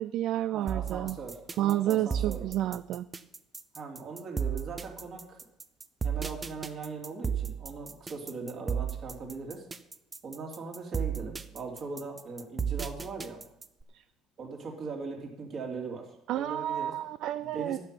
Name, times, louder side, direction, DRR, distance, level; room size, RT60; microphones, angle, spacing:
voice 1, 0.0-1.2 1.6-3.1 13.9-14.0 16.3-17.8, right 13 dB, 60° right, 13 dB, 0.3 m, -30 dB
voice 2, 0.5-2.5 3.7-5.4 6.0-9.6 10.2-13.4 14.4-16.1 16.3-16.9 17.4-17.8, right 4 dB, 40° right, 1 dB, 3.1 m, -40 dB
sound 1, 0.7-13.8, right 7 dB, 20° right, 0.6 m, -34 dB
12.5 x 5.9 x 9.2 m, 0.83 s
cardioid pair, 145°, 0 cm